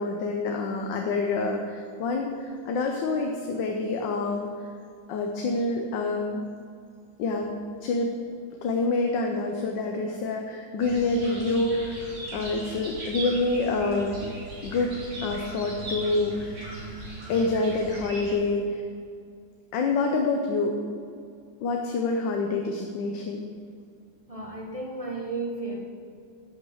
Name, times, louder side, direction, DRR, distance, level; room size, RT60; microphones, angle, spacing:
voice 1, 0.0-4.5 5.1-6.4 7.2-7.5 7.8-8.1 8.6-14.4 14.6-16.7 17.3-18.8 19.7-20.7 21.6-23.4, left 3 dB, 75° left, 2 dB, 1.5 m, -27 dB
sound 1, 10.8-18.3, right 1 dB, 55° right, 2.5 m, -39 dB
voice 2, 24.3-25.8, right 3 dB, 30° right, -1 dB, 0.7 m, -33 dB
10.5 x 6.6 x 6.3 m, 2.3 s
omnidirectional pair, 2.0 m